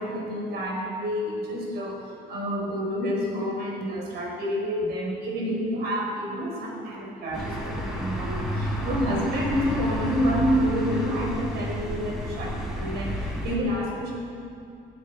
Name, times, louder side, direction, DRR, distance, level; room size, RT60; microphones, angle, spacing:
voice 1, 0.0-2.0 2.3-14.1, equal, 75° right, 0 dB, 4.3 m, -28 dB
sound 1, 7.3-13.6, left 1 dB, 5° right, 4.3 m, -31 dB
12.0 x 9.5 x 9.0 m, 2.5 s
cardioid pair, 110°, 17 cm